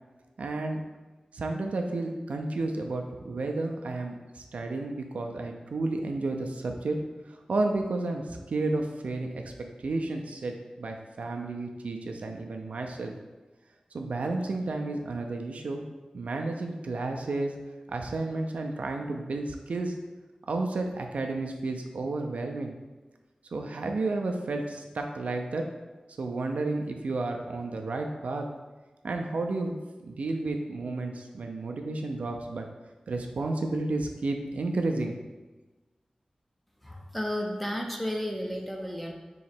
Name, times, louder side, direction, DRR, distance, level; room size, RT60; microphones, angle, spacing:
voice 1, 0.4-0.8 1.3-7.0 7.3-9.4 9.8-13.1 13.9-15.8 16.1-17.5 17.9-19.9 20.5-22.8 23.5-25.6 26.2-28.4 29.0-29.8 30.0-32.7 33.1-35.2, right 2 dB, 85° right, 3 dB, 0.4 m, -31 dB
voice 2, 36.8-39.1, equal, 5° left, 1 dB, 0.5 m, -32 dB
3.0 x 2.8 x 4.3 m, 1.2 s
wide cardioid pair, 90°, 2 cm